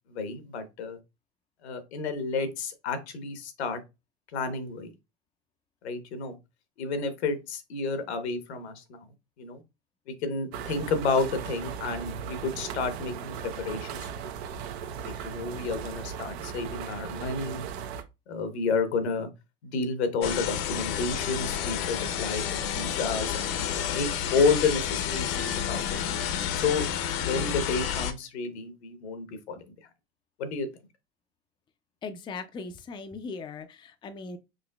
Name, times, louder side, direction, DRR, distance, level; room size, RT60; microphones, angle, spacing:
voice 1, 0.1-1.0 1.6-3.8 4.3-4.9 5.8-6.3 6.8-9.1 9.4-9.6 10.1-14.1 15.0-17.7 18.3-19.3 19.6-26.0 26.6-26.8 27.2-29.6 30.4-30.7, left 4 dB, 80° left, 1.1 m, -30 dB
sound 1, 10.5-18.0, right 7 dB, 75° right, 0.7 m, -37 dB
sound 2, 20.2-28.1, left 9 dB, 60° left, 0.8 m, -30 dB
voice 2, 32.0-34.4, left 4 dB, 15° left, 0.4 m, -39 dB
5.2 x 2.8 x 2.3 m
hypercardioid pair, 100°, 32 cm